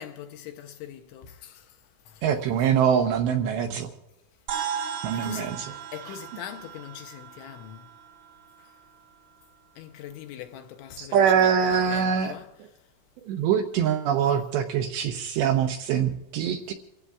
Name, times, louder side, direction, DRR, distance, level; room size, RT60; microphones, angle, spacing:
voice 1, 0.0-1.8 2.1-2.2 4.9-5.6 5.9-7.9 8.6-8.8 9.8-12.5, left 10 dB, 80° left, 2.9 m, -42 dB
voice 2, 2.2-3.9 5.0-5.7 6.1-6.2 11.0-12.3 13.2-16.7, right 8 dB, 80° right, 2.6 m, -24 dB
sound 1, 4.5-9.1, right 8 dB, 60° right, 2.0 m, -36 dB
28.5 x 16.0 x 2.4 m
omnidirectional pair, 5.8 m